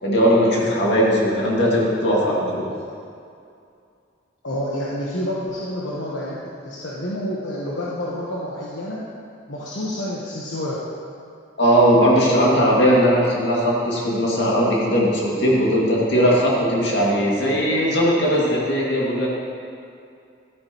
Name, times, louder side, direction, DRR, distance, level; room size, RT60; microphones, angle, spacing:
voice 1, 0.0-2.6 11.6-19.3, equal, 65° left, -5 dB, 2.1 m, -18 dB
voice 2, 4.4-6.4 6.6-9.0 9.5-10.7, left 1 dB, 85° left, -6 dB, 1.1 m, -28 dB
12.0 x 9.3 x 3.0 m, 2.4 s
head